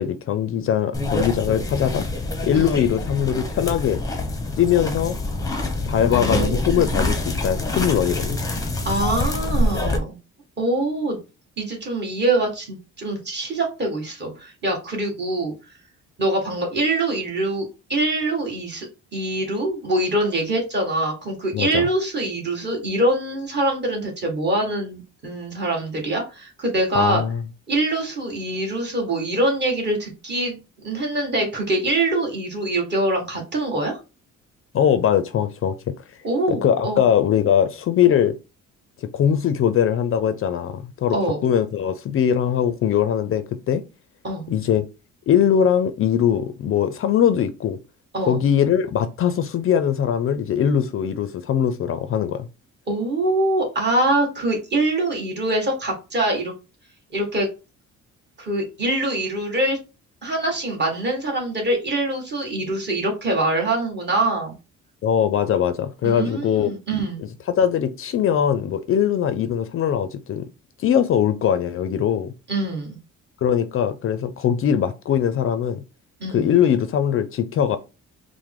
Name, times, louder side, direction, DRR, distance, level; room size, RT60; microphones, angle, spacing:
voice 1, 0.0-2.1 2.4-4.0 4.6-5.2 5.9-8.4 21.5-21.9 26.9-27.4 34.7-35.9 36.5-38.3 39.0-41.2 41.4-43.8 44.5-44.8 45.3-47.8 48.3-52.5 65.0-66.7 67.2-70.5 70.8-72.3 73.4-75.8 76.3-77.8, left 9 dB, 45° left, 0.4 m, -21 dB
sound 1, 0.9-10.0, left 2 dB, 10° left, 0.7 m, -25 dB
voice 2, 6.1-6.9 8.8-10.2 10.6-11.2 11.6-15.5 16.2-17.6 17.9-18.9 19.1-27.2 27.7-30.6 30.8-34.0 36.2-37.1 41.1-41.4 44.2-44.5 48.1-48.4 52.9-56.5 57.1-57.5 58.4-59.8 60.2-64.5 66.0-67.2 72.5-73.0 76.2-76.5, right 2 dB, 35° right, 1.5 m, -24 dB
4.7 x 2.0 x 3.6 m
cardioid pair, 140°, 30 cm